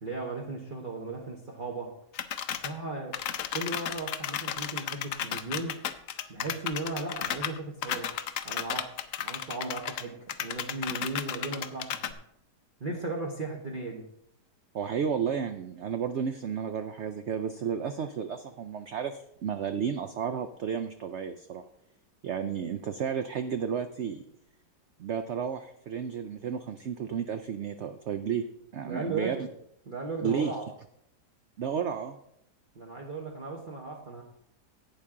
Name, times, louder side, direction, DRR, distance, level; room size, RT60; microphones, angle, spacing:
voice 1, 0.0-1.9 2.5-3.2 3.5-5.8 6.3-8.2 8.4-12.1 12.8-14.0 28.8-29.4 29.9-30.7 32.7-34.2, right 3 dB, 35° right, -2 dB, 1.1 m, -36 dB
sound 1, 2.1-2.7 3.1-10.0 10.3-12.1, left 10 dB, 65° left, 0.8 m, -34 dB
voice 2, 14.7-21.6 22.2-24.2 25.0-28.4 28.7-29.5 30.2-30.5 31.6-32.2, right 7 dB, 75° right, 8 dB, 0.6 m, -32 dB
11.5 x 8.6 x 3.7 m, 0.75 s
omnidirectional pair, 1.8 m